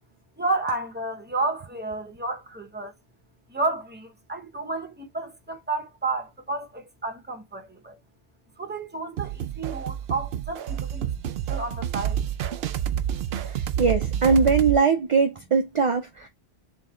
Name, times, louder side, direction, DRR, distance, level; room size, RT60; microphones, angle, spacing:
voice 1, 0.4-2.9 3.5-8.0 8.6-12.2, right 3 dB, 10° right, 0.8 m, -31 dB
sound 1, 9.2-14.8, right 9 dB, 65° right, 0.7 m, -29 dB
voice 2, 13.5-16.3, right 5 dB, 45° right, 0.4 m, -21 dB
3.6 x 3.1 x 3.6 m
omnidirectional pair, 1.2 m